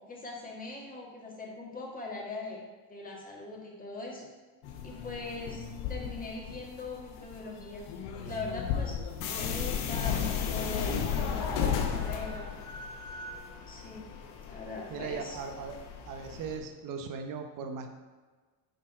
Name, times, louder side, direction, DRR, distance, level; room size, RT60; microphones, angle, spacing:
voice 1, 0.0-2.6 2.9-4.3 4.8-7.9 8.2-9.0 9.3-12.5 13.7-14.1 14.4-15.4, left 3 dB, 15° left, -2 dB, 1.9 m, -41 dB
sound 1, 4.6-16.6, left 7 dB, 75° left, 1.3 m, -35 dB
voice 2, 14.9-15.7 16.1-17.9, right 5 dB, 45° right, 5 dB, 0.9 m, -38 dB
10.0 x 4.1 x 4.4 m, 1.4 s
cardioid pair, 120°, 48 cm